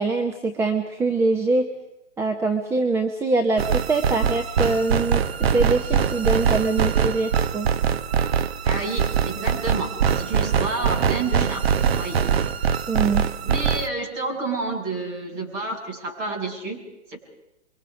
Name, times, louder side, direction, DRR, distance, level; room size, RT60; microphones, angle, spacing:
voice 1, 0.0-1.7 2.2-5.2 5.5-7.7 12.9-13.2, right 3 dB, 5° right, 4 dB, 0.8 m, -23 dB
sound 1, 3.6-13.9, right 7 dB, 55° right, 1.0 m, -23 dB
voice 2, 8.6-12.2 13.4-17.2, right 3 dB, 30° right, 1 dB, 6.0 m, -30 dB
28.5 x 23.5 x 4.9 m, 0.91 s
hypercardioid pair, 140°, 36 cm